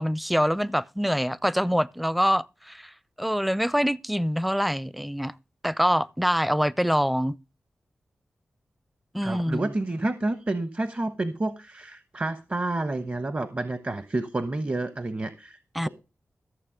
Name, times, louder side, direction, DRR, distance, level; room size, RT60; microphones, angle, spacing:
voice 1, 0.0-2.9 3.2-5.3 5.6-7.4 9.1-9.7 15.8-15.9, equal, ahead, 0.5 m, -25 dB
voice 2, 9.2-15.9, right 2 dB, 35° right, 1.1 m, -29 dB
14.5 x 7.0 x 5.0 m
cardioid pair, 50°, 4 cm